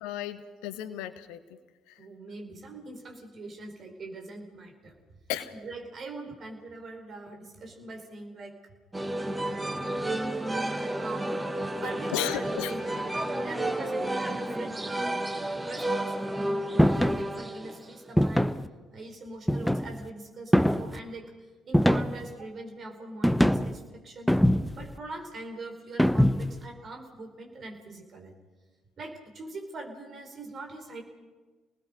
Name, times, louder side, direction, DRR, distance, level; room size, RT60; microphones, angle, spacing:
voice 1, 0.0-1.4 1.9-2.0 5.3-5.5 12.1-12.7, left 11 dB, 70° left, 12 dB, 1.2 m, -34 dB
voice 2, 2.0-4.9 5.5-8.6 10.9-11.3 11.8-15.2 15.6-18.5 18.9-21.3 21.7-24.3 24.7-28.3 29.0-31.0, right 2 dB, 45° right, 4 dB, 4.8 m, -42 dB
sound 1, 8.9-18.1, right 1 dB, 15° right, 2.1 m, -31 dB
sound 2, 16.8-17.2 18.2-18.7 19.5-20.0 20.5-21.0 21.7-22.3 23.2-23.8 24.3-24.9 26.0-26.6, equal, ahead, 0.9 m, -23 dB
29.0 x 19.5 x 5.3 m, 1.3 s
figure-of-eight pair, 45°, 0 cm